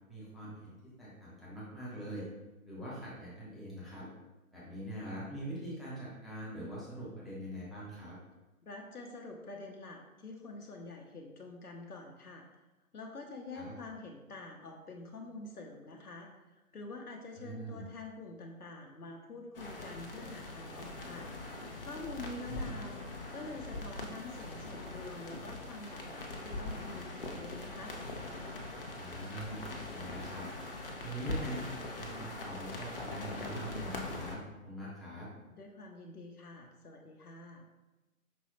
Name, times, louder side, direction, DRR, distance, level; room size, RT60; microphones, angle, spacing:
voice 1, 0.1-2.3 2.7-4.1 4.5-8.2 13.5-13.7 17.3-17.8 22.5-22.8 28.9-30.5 31.0-35.3, right 1 dB, ahead, -9 dB, 0.4 m, -43 dB
voice 2, 8.6-12.5 12.9-21.3 21.8-28.0 35.5-37.7, left 3 dB, 90° left, 1 dB, 0.8 m, -46 dB
sound 1, 19.5-34.4, left 2 dB, 40° left, 0.6 m, -42 dB
5.4 x 3.1 x 2.8 m, 1.1 s
figure-of-eight pair, 145°, 43 cm